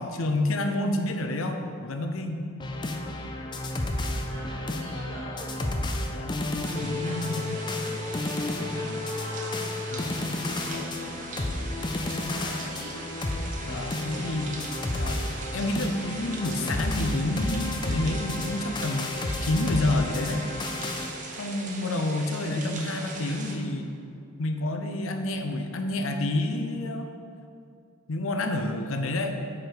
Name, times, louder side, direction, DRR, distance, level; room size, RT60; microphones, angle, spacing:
voice 1, 0.0-2.4 6.1-7.6 9.9-10.3 13.6-14.5 14.9-15.2 15.5-19.1 19.4-20.4 21.4-23.9 24.4-27.1 28.1-29.4, left 2 dB, 75° left, 6 dB, 0.7 m, -29 dB
sound 1, 2.6-21.1, left 2 dB, 20° left, 0.4 m, -31 dB
voice 2, 4.1-5.7 6.9-11.9 12.3-13.0, right 1 dB, 70° right, -5 dB, 2.0 m, -45 dB
sound 2, 6.6-23.6, right 3 dB, 40° right, 0.7 m, -40 dB
8.0 x 5.0 x 4.7 m, 2.3 s
head